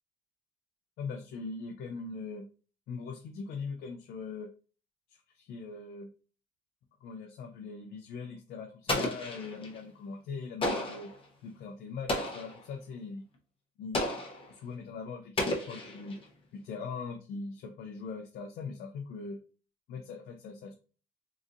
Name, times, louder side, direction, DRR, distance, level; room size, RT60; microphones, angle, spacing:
voice 1, 1.0-2.5 2.9-4.5 5.1-6.1 7.0-11.1 11.4-13.2 13.8-14.2 14.5-16.2 16.5-19.4 19.9-20.7, left 4 dB, 65° left, 3 dB, 0.6 m, -41 dB
Explosion, 8.9-9.8 10.6-11.2 12.1-12.6 13.9-14.5 15.4-16.2, left 1 dB, 30° left, 0.9 m, -33 dB
3.9 x 2.6 x 2.6 m, 0.37 s
cardioid pair, 110°, 17 cm